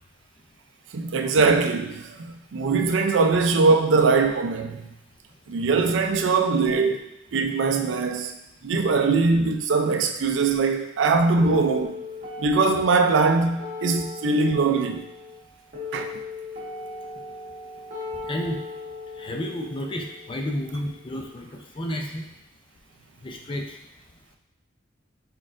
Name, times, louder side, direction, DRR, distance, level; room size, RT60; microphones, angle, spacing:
voice 1, 0.9-4.8 5.5-7.0 7.3-8.4 8.6-12.0 12.4-15.0 15.9-16.2, right 4 dB, 70° right, 0.4 m, -21 dB
sound 1, 11.4-21.4, left 3 dB, 40° right, 1.4 m, -38 dB
voice 2, 18.2-18.6 19.2-21.5 21.8-22.2 23.2-23.8, equal, 25° left, 0.4 m, -31 dB
4.5 x 4.2 x 2.5 m
head